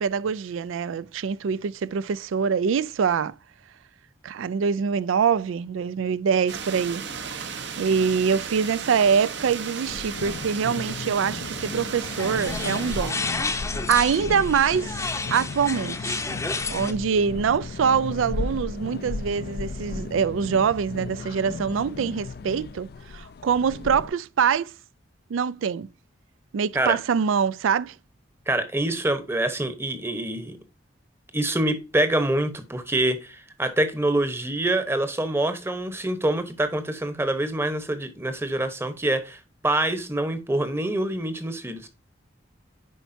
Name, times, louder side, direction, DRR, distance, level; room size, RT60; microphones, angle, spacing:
voice 1, 0.0-3.4 4.2-13.6 13.9-15.0 15.3-16.2 16.7-24.7 25.3-25.9 26.5-28.0, right 6 dB, 85° right, 0.4 m, -24 dB
sound 1, 6.5-13.1, right 6 dB, 60° right, 0.9 m, -35 dB
sound 2, 9.8-24.1, left 4 dB, 50° left, 0.3 m, -35 dB
sound 3, 11.9-16.9, left 3 dB, 15° left, 0.7 m, -31 dB
voice 2, 28.5-30.6 31.3-41.9, right 1 dB, 10° right, 0.9 m, -25 dB
10.0 x 4.6 x 2.6 m
head